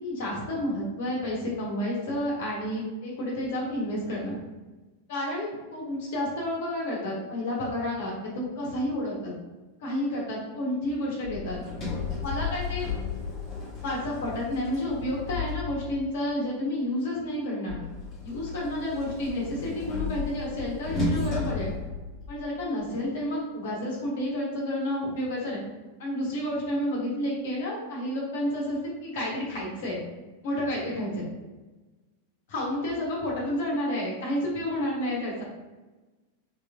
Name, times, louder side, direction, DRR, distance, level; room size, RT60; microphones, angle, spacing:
voice 1, 0.0-4.4 5.1-9.3 9.8-11.6 12.2-12.9 13.8-17.7 18.2-21.7 22.3-25.6 26.0-30.0 30.4-31.2 32.5-35.4, left 1 dB, 55° left, -4 dB, 1.0 m, -30 dB
Sliding door, 11.2-16.1 17.7-22.6, left 4 dB, 30° left, 1.1 m, -34 dB
3.1 x 3.0 x 2.4 m, 1.2 s
figure-of-eight pair, 90°, 0 cm